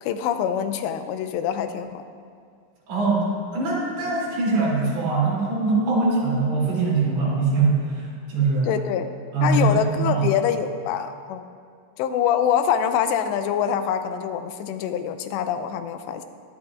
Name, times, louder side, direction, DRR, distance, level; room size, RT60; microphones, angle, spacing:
voice 1, 0.0-2.0 8.6-9.1 9.4-11.4 12.0-16.2, left 8 dB, 90° left, 9 dB, 2.8 m, -25 dB
voice 2, 2.9-8.7 9.3-10.3, right 3 dB, 70° right, -5 dB, 4.8 m, -22 dB
18.5 x 11.5 x 2.4 m, 2.2 s
omnidirectional pair, 4.9 m